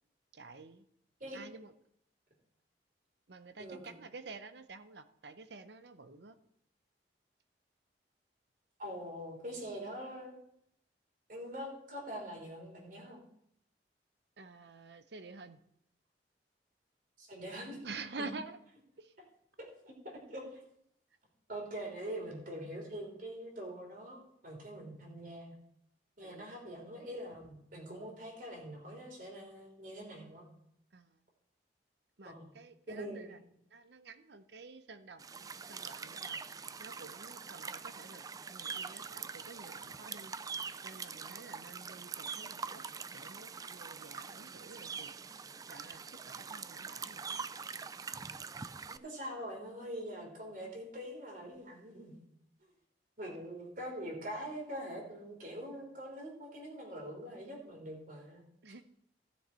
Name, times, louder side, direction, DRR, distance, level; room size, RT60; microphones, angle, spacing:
voice 1, 0.3-0.9 1.3-1.7 3.3-6.3 14.4-15.6 17.8-18.6 19.0-19.1 26.2-26.5 30.9-31.1 32.2-33.4 33.7-36.4 36.8-38.2 38.5-40.4 40.8-42.9 43.1-45.1 45.7-47.4 58.6-58.8, right 3 dB, 70° right, 11 dB, 0.8 m, -49 dB
voice 2, 3.6-3.9 8.8-10.3 11.3-13.2 17.2-17.8 18.1-18.3 19.6-20.6 21.5-25.5 26.2-30.4 32.2-32.5 32.9-33.3 48.9-52.1 53.2-58.4, equal, 50° right, 0 dB, 3.5 m, -44 dB
sound 1, 35.2-49.0, right 5 dB, 20° right, 0.3 m, -44 dB
16.0 x 6.5 x 4.4 m, 0.74 s
head